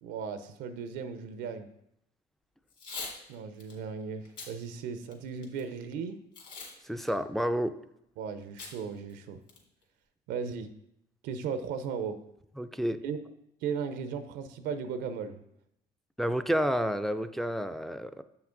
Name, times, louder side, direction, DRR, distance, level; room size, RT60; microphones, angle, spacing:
voice 1, 0.0-1.7 3.3-6.2 8.2-9.4 10.3-10.7 11.2-12.2 13.0-13.2 13.6-15.4, right 6 dB, 90° right, 9 dB, 0.6 m, -36 dB
Packing tape duct tape / Tearing, 2.7-3.2 3.6-3.7 4.2-4.5 5.0-5.6 6.3-6.7 7.0-7.1 8.6-8.7 9.1-9.2 9.5-9.8, left 4 dB, 50° left, 2.3 m, -41 dB
voice 2, 6.8-7.8 12.6-13.0 16.2-18.2, equal, ahead, 9 dB, 0.3 m, -30 dB
7.3 x 5.8 x 3.8 m, 0.79 s
cardioid pair, 110°, 17 cm